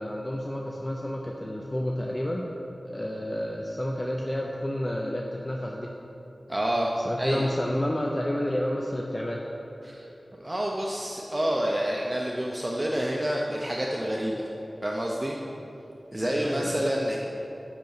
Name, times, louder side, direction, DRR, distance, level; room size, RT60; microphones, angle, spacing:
voice 1, 0.0-2.5 2.8-5.9 7.0-9.4 16.2-16.9, left 1 dB, 20° left, -1 dB, 0.6 m, -30 dB
voice 2, 6.5-7.4 9.8-10.1 10.3-14.4 14.8-15.4 16.1-17.2, right 1 dB, 20° right, -2 dB, 0.7 m, -28 dB
6.7 x 5.9 x 6.6 m, 3.0 s
wide cardioid pair, 75°, 0 cm